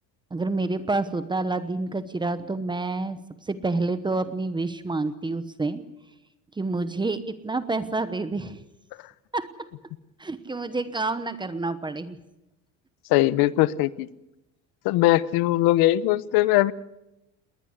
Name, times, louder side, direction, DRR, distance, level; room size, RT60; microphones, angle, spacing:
voice 1, 0.3-3.2 3.5-5.8 6.6-8.6 9.3-9.5 10.2-12.2, right 3 dB, 15° right, 12 dB, 1.0 m, -28 dB
voice 2, 13.1-14.1 14.8-16.7, left 16 dB, 80° left, 18 dB, 0.9 m, -20 dB
20.5 x 19.5 x 8.1 m, 0.92 s
cardioid pair, 150°, 36 cm